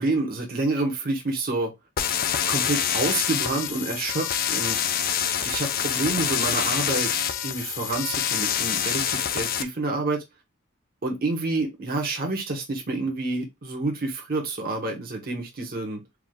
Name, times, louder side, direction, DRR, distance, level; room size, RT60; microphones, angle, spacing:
voice 1, 0.0-1.7 2.5-4.9 5.4-10.2 11.0-16.0, right 2 dB, 45° right, 1.1 m, -28 dB
sound 1, 2.0-9.6, left 9 dB, 45° left, 0.5 m, -26 dB
4.7 x 2.4 x 3.7 m
head